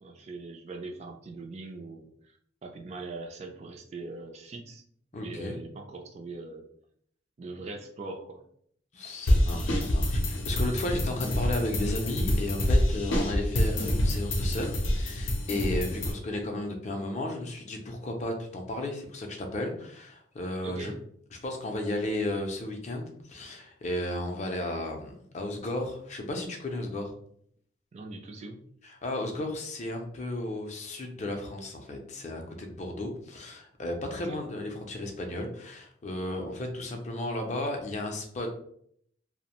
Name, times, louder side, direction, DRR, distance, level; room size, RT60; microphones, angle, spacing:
voice 1, 0.0-4.8 5.2-6.7 7.4-8.4 16.0-16.2 20.6-21.0 27.9-28.6 34.1-34.4, right 3 dB, 35° right, 3 dB, 0.3 m, -41 dB
voice 2, 5.1-5.6 8.9-20.9 21.4-27.1 29.0-38.5, left 1 dB, 35° left, 3 dB, 0.4 m, -34 dB
sound 1, 9.3-16.1, left 1 dB, 90° left, 0.6 m, -27 dB
2.5 x 2.0 x 2.9 m, 0.65 s
head